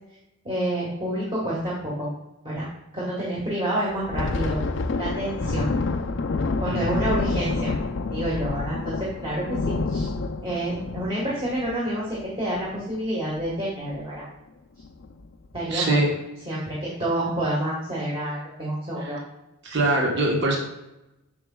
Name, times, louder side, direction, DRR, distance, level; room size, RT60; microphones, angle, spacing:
voice 1, 0.4-2.1 2.4-2.7 2.9-4.6 5.0-5.7 6.6-7.7 8.1-10.1 10.4-14.2 15.5-16.1 16.5-19.2, right 1 dB, 25° right, -6 dB, 1.4 m, -28 dB
Thunder, 3.9-13.0 13.3-13.5 13.9-14.2 14.8-15.3, left 3 dB, 55° left, 0.5 m, -28 dB
voice 2, 15.7-16.1 19.0-19.2 19.6-20.6, right 2 dB, 50° right, -1 dB, 1.1 m, -23 dB
7.7 x 6.2 x 2.3 m, 0.94 s
head